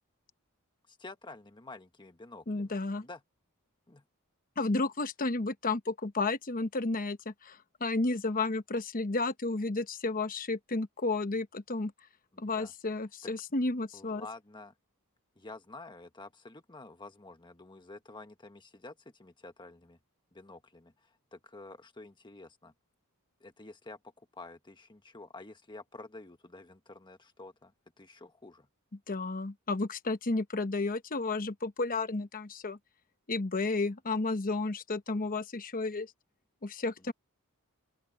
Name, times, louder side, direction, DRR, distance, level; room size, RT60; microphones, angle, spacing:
voice 1, 0.9-2.8 3.0-3.2 3.9-4.0 12.3-12.7 13.2-13.3 13.9-14.7 15.3-20.0 20.3-22.7 23.4-28.7 37.0-37.1, left 2 dB, 20° left, 1.4 m, -49 dB
voice 2, 2.5-3.0 4.6-11.9 12.4-14.2 29.1-32.8 33.3-36.1 36.6-37.1, left 3 dB, 40° left, 1.1 m, -32 dB
open air
head